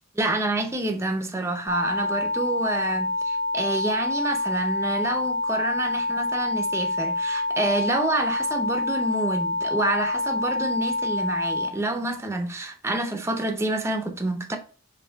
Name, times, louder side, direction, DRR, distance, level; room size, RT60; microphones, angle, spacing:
voice 1, 0.1-14.6, right 2 dB, 15° right, 0.5 m, -28 dB
sound 1, 1.7-11.7, left 2 dB, 30° left, 1.0 m, -27 dB
4.1 x 3.3 x 3.8 m
head